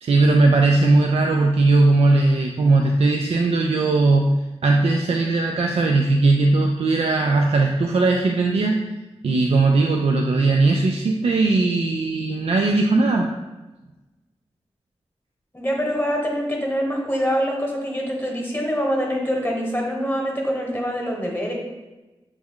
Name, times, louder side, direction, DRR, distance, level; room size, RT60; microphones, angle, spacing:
voice 1, 0.0-8.8 9.2-13.3, right 3 dB, 65° right, 2 dB, 0.4 m, -18 dB
voice 2, 15.5-21.5, equal, 20° left, -1 dB, 1.1 m, -24 dB
6.3 x 2.3 x 3.6 m, 1.1 s
wide cardioid pair, 65°, 11 cm